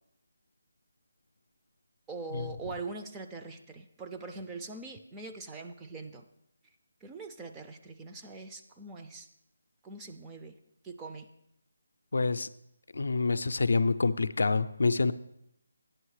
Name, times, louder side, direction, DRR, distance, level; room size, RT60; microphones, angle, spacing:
voice 1, 2.1-6.2 7.0-9.3 9.8-10.6 10.8-11.3, right 3 dB, 10° right, 3 dB, 0.3 m, -42 dB
voice 2, 12.1-12.5 12.9-15.1, left 3 dB, 70° left, 12 dB, 0.4 m, -27 dB
8.9 x 6.3 x 4.8 m, 0.77 s
hypercardioid pair, 175°, 0 cm